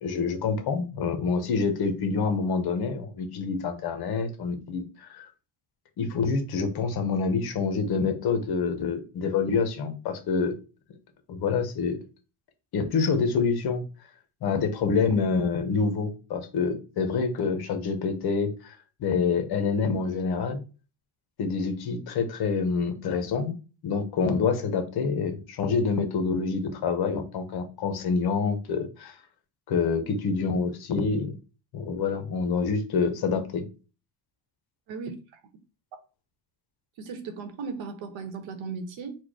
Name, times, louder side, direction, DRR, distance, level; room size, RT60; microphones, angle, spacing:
voice 1, 0.0-5.3 6.0-10.6 11.3-12.0 12.7-13.8 14.4-20.6 21.4-23.6 23.8-29.2 29.7-31.3 31.7-33.7, left 5 dB, 50° left, 0.9 m, -27 dB
voice 2, 34.9-35.4 37.0-39.2, right 5 dB, 75° right, 1.1 m, -36 dB
4.5 x 2.3 x 4.7 m
cardioid pair, 165°, 47 cm